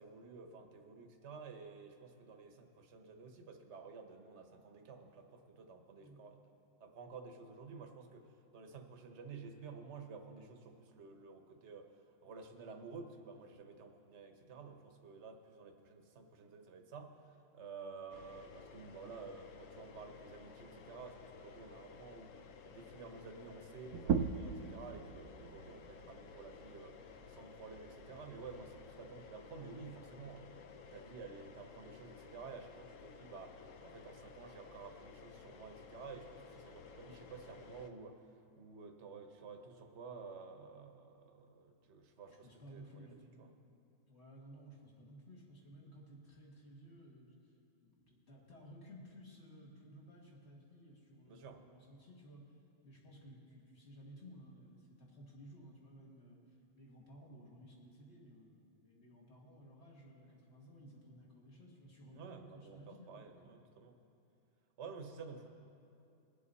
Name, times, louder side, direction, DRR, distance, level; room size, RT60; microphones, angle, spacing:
voice 1, 0.0-6.4 6.8-8.3 8.5-11.9 12.2-17.1 17.5-27.0 27.3-30.5 30.9-33.5 33.8-38.3 38.6-43.1 43.4-43.5 51.3-51.6 62.2-64.0 64.8-65.5, right 4 dB, 50° right, 5 dB, 1.2 m, -52 dB
sound 1, 18.1-37.9, left 5 dB, 65° left, 1.0 m, -55 dB
sound 2, 23.9-29.1, right 7 dB, 80° right, 1.1 m, -40 dB
voice 2, 42.2-43.3 44.1-47.5 47.8-52.5 52.8-56.4 56.7-63.5 65.0-65.3, equal, 45° left, -3 dB, 2.2 m, -57 dB
21.5 x 7.7 x 4.1 m, 2.6 s
omnidirectional pair, 1.6 m